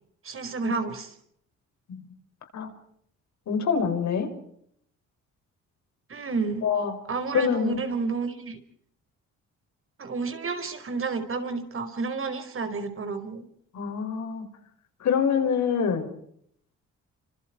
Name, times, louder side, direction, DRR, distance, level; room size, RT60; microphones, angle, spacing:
voice 1, 0.2-1.1 6.1-6.7 7.1-8.6 10.0-13.4, right 4 dB, 45° right, 8 dB, 4.9 m, -30 dB
voice 2, 3.5-4.3 6.6-6.9 7.3-7.8 13.7-14.5 15.0-16.1, left 6 dB, 70° left, 6 dB, 5.8 m, -25 dB
29.5 x 26.0 x 4.5 m, 0.67 s
cardioid pair, 90°, 30 cm